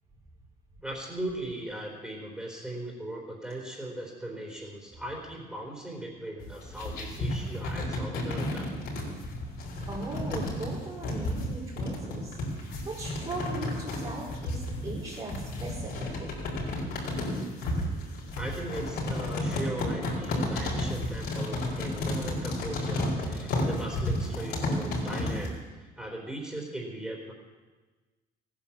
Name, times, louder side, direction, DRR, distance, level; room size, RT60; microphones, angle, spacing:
voice 1, 0.8-8.7 17.5-17.8 18.4-25.5 25.8-27.3, right 1 dB, 5° right, -2 dB, 3.9 m, -38 dB
sound 1, 6.4-25.5, left 2 dB, 70° left, 4.9 m, -32 dB
voice 2, 9.9-16.3, right 2 dB, 35° right, -8 dB, 4.5 m, -38 dB
15.5 x 9.9 x 7.2 m, 1.3 s
cardioid pair, 110°, 17 cm